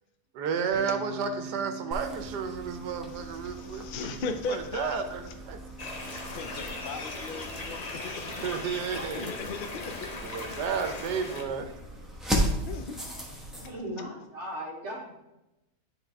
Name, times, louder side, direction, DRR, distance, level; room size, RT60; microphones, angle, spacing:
voice 1, 0.3-4.2 4.5-5.6 8.4-9.3 10.2-11.7, right 6 dB, 80° right, 7 dB, 1.4 m, -32 dB
sound 1, 0.7-7.0, right 5 dB, 65° right, 2.1 m, -44 dB
sound 2, 1.9-13.7, equal, ahead, 1.0 m, -37 dB
voice 2, 3.1-5.3 5.9-8.3 9.1-10.2 12.6-13.0, left 4 dB, 75° left, 7 dB, 0.4 m, -38 dB
sound 3, 5.8-11.4, left 2 dB, 35° left, 0.7 m, -38 dB
voice 3, 13.6-15.1, equal, 45° right, -4 dB, 1.9 m, -37 dB
9.9 x 3.9 x 3.5 m, 0.93 s
omnidirectional pair, 1.7 m